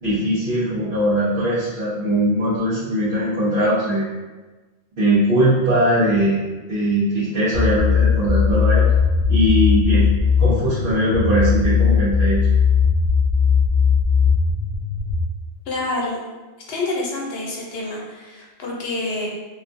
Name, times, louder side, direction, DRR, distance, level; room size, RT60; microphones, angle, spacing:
voice 1, 0.0-4.0 5.0-6.4 6.7-8.8 9.3-10.1 10.4-12.4, right 1 dB, 80° right, -13 dB, 1.2 m, -20 dB
sound 1, 7.5-15.2, left 6 dB, 55° left, 0.5 m, -18 dB
voice 2, 15.7-16.2 16.7-19.3, left 2 dB, 75° left, -2 dB, 0.9 m, -27 dB
2.9 x 2.3 x 2.5 m, 1.2 s
omnidirectional pair, 1.1 m